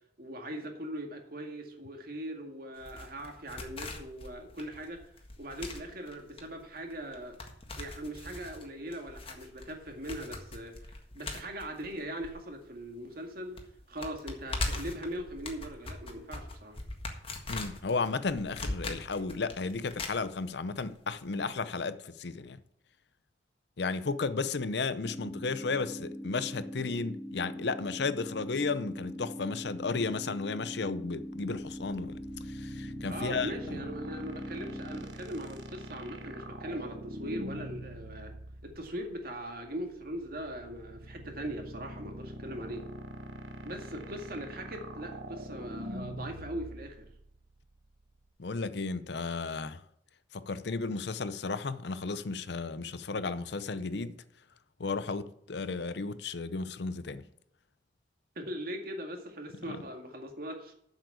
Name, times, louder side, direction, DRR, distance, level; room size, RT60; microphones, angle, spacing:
voice 1, 0.2-5.0 5.4-7.4 7.8-13.6 13.9-16.8 33.1-38.3 38.6-42.9 43.6-47.0 58.4-60.7, right 1 dB, 55° right, 2.1 m, -40 dB
sound 1, 2.8-12.9 13.1-13.2 13.6-20.8 21.1-21.2, left 2 dB, 30° left, 1.6 m, -41 dB
voice 2, 17.5-22.6 23.8-32.2 32.5-33.8 48.4-49.8 50.3-54.2 54.8-57.2 59.6-59.7, left 4 dB, 65° left, 0.6 m, -34 dB
sound 2, 25.0-35.0, equal, 5° right, 0.9 m, -42 dB
sound 3, 31.3-48.3, right 1 dB, 80° right, 1.3 m, -44 dB
7.6 x 7.3 x 8.3 m
head